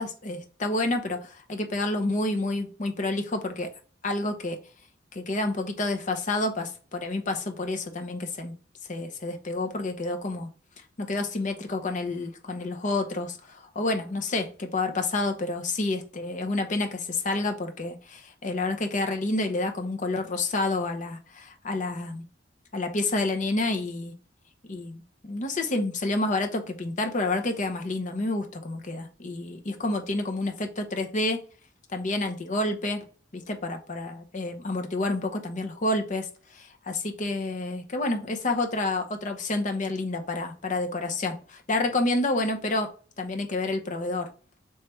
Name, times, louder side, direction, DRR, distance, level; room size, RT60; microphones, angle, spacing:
voice 1, 0.0-3.7 4.0-4.6 5.1-8.5 8.9-10.5 11.0-22.2 22.7-24.1 24.7-31.4 31.9-33.0 33.3-42.9 43.2-44.3, left 2 dB, 45° left, 5 dB, 0.7 m, -29 dB
3.2 x 3.1 x 4.5 m, 0.38 s
head